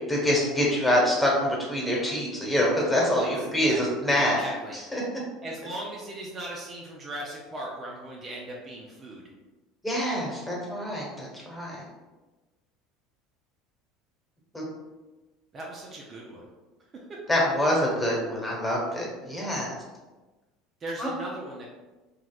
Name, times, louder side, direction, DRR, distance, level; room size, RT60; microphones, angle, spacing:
voice 1, 0.1-4.4 4.7-5.0 9.8-11.8 14.5-14.6 17.3-19.7 21.0-21.1, left 1 dB, 10° left, -4 dB, 1.3 m, -25 dB
voice 2, 3.2-3.8 4.3-4.8 5.4-9.2 15.5-16.4 20.8-21.7, right 1 dB, 35° right, -3 dB, 0.6 m, -38 dB
4.0 x 2.3 x 2.4 m, 1.2 s
hypercardioid pair, 80°, 0 cm